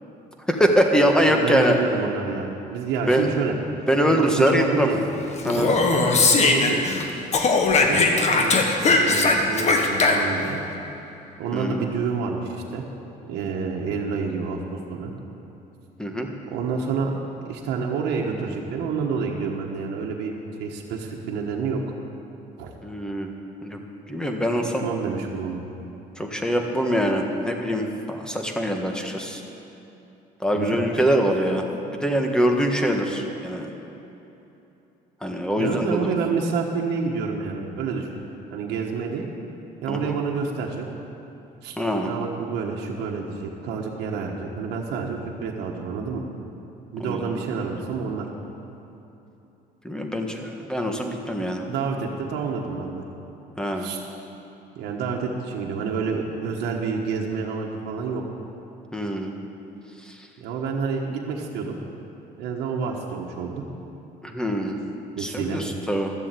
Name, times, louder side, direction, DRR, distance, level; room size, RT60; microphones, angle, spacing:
voice 1, 0.5-1.7 3.1-3.3 3.9-4.9 5.4-5.7 11.5-11.8 16.0-16.3 22.8-23.3 23.6-23.8 24.1-24.9 26.2-29.4 30.4-33.7 35.2-36.1 39.9-40.2 41.8-42.1 47.0-47.3 49.8-51.6 53.6-53.9 58.9-59.3 60.0-60.3 64.2-64.8 65.2-66.1, equal, 5° left, 3 dB, 1.4 m, -23 dB
voice 2, 1.2-3.5 4.0-5.0 5.6-6.8 7.8-8.6 8.9-10.6 11.4-12.8 13.3-15.1 16.5-17.2 17.5-21.8 22.6-22.7 24.6-25.6 30.5-30.8 35.6-38.1 38.5-39.3 39.8-40.8 41.6-41.8 42.0-46.3 46.9-48.3 51.6-53.0 53.8-54.0 54.8-58.2 60.4-61.8 62.3-63.6 65.2-65.6, right 5 dB, 85° right, -1 dB, 1.3 m, -28 dB
Speech, 5.4-7.0 7.3-10.5, left 3 dB, 40° left, 1.4 m, -20 dB
13.0 x 7.4 x 8.3 m, 3.0 s
cardioid pair, 110°, 17 cm